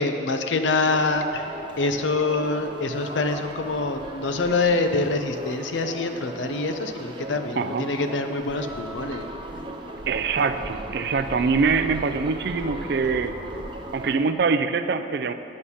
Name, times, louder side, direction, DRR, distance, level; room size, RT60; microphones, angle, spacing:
voice 1, 0.0-1.5 1.8-9.2, left 3 dB, 80° left, 7 dB, 0.6 m, -25 dB
sound 1, 0.9-14.2, right 1 dB, 25° right, 0.7 m, -37 dB
voice 2, 7.6-7.9 10.1-13.3 13.9-15.3, right 4 dB, 60° right, 10 dB, 0.4 m, -24 dB
8.7 x 6.4 x 5.5 m, 2.7 s
head